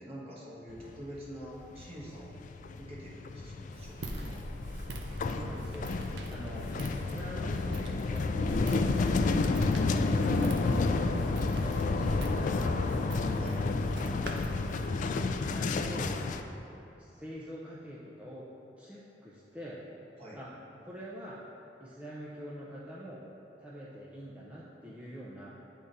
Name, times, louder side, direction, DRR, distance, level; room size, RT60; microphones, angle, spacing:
voice 1, 0.0-2.4 2.8-4.4 13.4-13.6 20.2-20.4, equal, 35° right, -6 dB, 1.3 m, -46 dB
sound 1, 0.7-1.2 1.4-16.4, left 3 dB, 45° left, 0.3 m, -30 dB
Walk footsteps, 3.7-14.9, right 1 dB, 80° right, 0.6 m, -42 dB
voice 2, 5.2-5.9 6.3-6.6 7.1-9.0 9.4-9.7 10.0-11.2 11.6-12.9 15.0-16.1 17.0-18.5 18.8-19.8 20.3-20.5 20.8-21.4 21.8-23.2 23.6-25.5, equal, 5° right, -7 dB, 0.5 m, -44 dB
8.7 x 3.7 x 4.0 m, 2.8 s
head